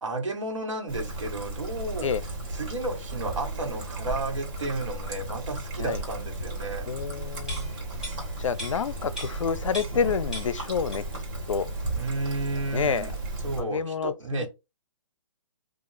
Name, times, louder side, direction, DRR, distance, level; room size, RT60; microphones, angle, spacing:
voice 1, 0.0-2.1 2.5-6.9 11.9-13.1 13.4-14.5, right 2 dB, 80° right, 1.3 m, -32 dB
Trickle dribble, 0.9-13.6, right 2 dB, 35° right, 1.6 m, -34 dB
voice 2, 6.9-7.7 8.4-11.0 11.5-11.7 12.7-13.1 13.6-14.5, left 6 dB, 85° left, 0.4 m, -28 dB
sound 1, 7.5-10.1 10.3-11.3 11.6-11.7, equal, 5° right, 1.9 m, -40 dB
3.7 x 2.4 x 3.1 m
hypercardioid pair, 145°, 16 cm